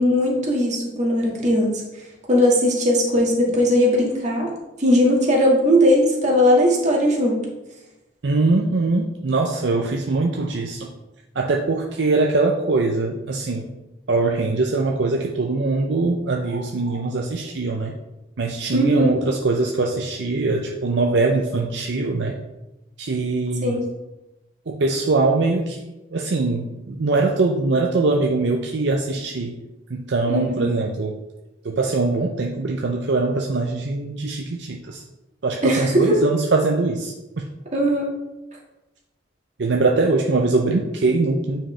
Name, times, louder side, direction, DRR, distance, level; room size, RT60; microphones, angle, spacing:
voice 1, 0.0-1.8 2.3-4.5 4.8-7.4 18.7-19.1 23.6-23.8 30.3-30.7 35.6-36.1 37.7-38.1, equal, 40° right, -2 dB, 1.8 m, -18 dB
voice 2, 8.2-10.9 11.3-13.7 14.1-18.0 18.4-22.4 23.0-23.8 24.7-25.8 26.1-29.6 29.9-31.2 31.6-35.0 35.4-37.5 39.6-41.7, right 3 dB, 70° right, 1 dB, 0.6 m, -22 dB
8.7 x 4.9 x 3.3 m, 1.0 s
head